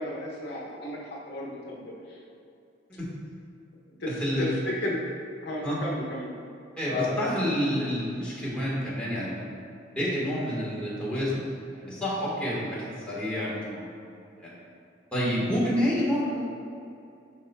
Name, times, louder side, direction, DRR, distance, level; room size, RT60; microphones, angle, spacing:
voice 1, 0.0-2.2 4.0-5.0 5.4-6.3 6.9-7.6, left 1 dB, 60° left, -4 dB, 0.9 m, -33 dB
voice 2, 6.8-9.5 9.9-11.4 11.7-14.6 15.1-16.5, equal, 5° left, -8 dB, 1.4 m, -29 dB
11.0 x 4.3 x 2.2 m, 2.6 s
head